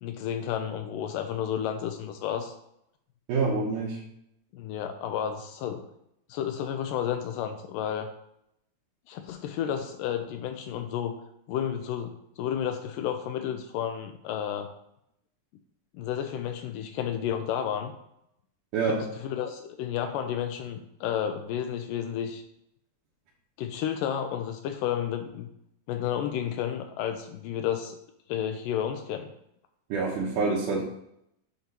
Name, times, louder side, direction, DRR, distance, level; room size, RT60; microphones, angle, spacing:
voice 1, 0.0-2.5 4.5-5.8 6.3-8.1 9.1-11.1 11.5-14.7 15.9-17.9 19.2-22.4 23.6-25.5 25.9-28.0 28.3-29.3, left 9 dB, 80° left, 6 dB, 2.0 m, -31 dB
voice 2, 3.3-4.0 18.7-19.0 29.9-30.8, right 4 dB, 75° right, -5 dB, 2.3 m, -26 dB
7.8 x 3.0 x 5.2 m, 0.77 s
omnidirectional pair, 4.1 m